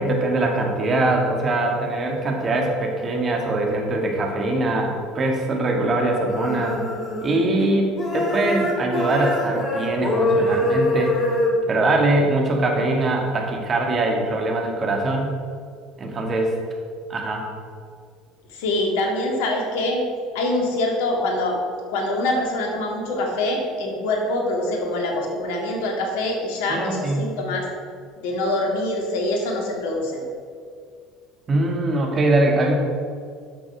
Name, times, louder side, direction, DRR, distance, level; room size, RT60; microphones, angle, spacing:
voice 1, 0.0-6.8 7.2-11.3 11.7-15.3 16.0-16.5 17.1-17.5 26.7-27.2 31.5-32.8, right 2 dB, 35° right, 1 dB, 2.1 m, -22 dB
sound 1, 6.3-7.7 7.9-11.5, left 1 dB, 35° left, 2.7 m, -24 dB
voice 2, 18.5-20.0 20.3-21.6 21.9-27.6 28.2-30.2, left 1 dB, 75° left, 1 dB, 2.0 m, -24 dB
10.5 x 6.2 x 5.1 m, 2.1 s
hypercardioid pair, 70°, 0 cm